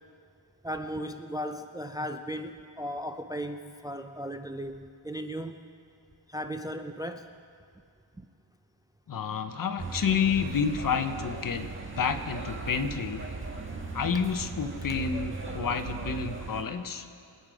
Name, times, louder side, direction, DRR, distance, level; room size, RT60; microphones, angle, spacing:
voice 1, 0.6-5.6 6.3-7.3 8.2-8.3, equal, 10° right, 7 dB, 0.5 m, -36 dB
voice 2, 9.1-11.7 12.0-13.2 13.9-17.1, left 6 dB, 50° left, 8 dB, 1.0 m, -29 dB
sound 1, 9.8-16.6, right 4 dB, 25° right, 1.7 m, -38 dB
25.0 x 9.3 x 5.0 m, 2.4 s
cardioid pair, 110°, 44 cm